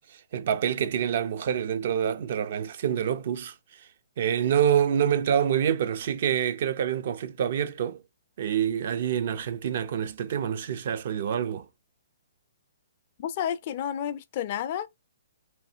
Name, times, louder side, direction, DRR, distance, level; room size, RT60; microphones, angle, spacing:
voice 1, 0.1-3.5 4.2-8.0 8.4-11.7, right 9 dB, 55° right, 0.4 m, -26 dB
voice 2, 13.2-14.9, left 9 dB, 40° left, 0.3 m, -31 dB
3.1 x 2.4 x 2.7 m
hypercardioid pair, 150°, 0 cm